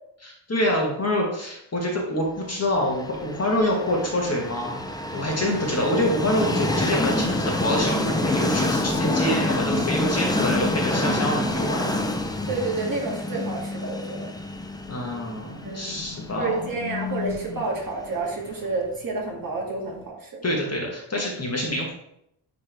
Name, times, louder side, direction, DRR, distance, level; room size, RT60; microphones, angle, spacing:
voice 1, 0.2-4.8 5.1-11.9 14.9-16.6 20.4-21.9, left 1 dB, 30° left, -1 dB, 1.2 m, -26 dB
Train, 2.8-18.6, left 2 dB, 10° left, 0.3 m, -27 dB
voice 2, 12.5-14.4 15.6-15.9 16.3-20.3, right 3 dB, 40° right, -2 dB, 1.7 m, -29 dB
sound 1, 14.5-20.0, left 7 dB, 75° left, 1.6 m, -38 dB
10.0 x 3.4 x 3.3 m, 0.76 s
wide cardioid pair, 175°, 50 cm